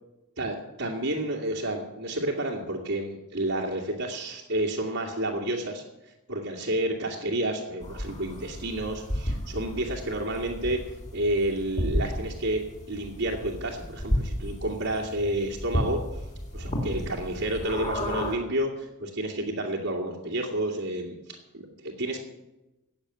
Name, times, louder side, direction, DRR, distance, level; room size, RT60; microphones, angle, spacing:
voice 1, 0.4-5.8 6.3-10.8 11.1-12.6 12.9-16.0 16.5-22.2, right 1 dB, 60° right, -4 dB, 2.3 m, -30 dB
sound 1, 7.8-18.3, equal, 30° left, 3.4 m, -33 dB
17.5 x 7.2 x 8.9 m, 0.98 s
head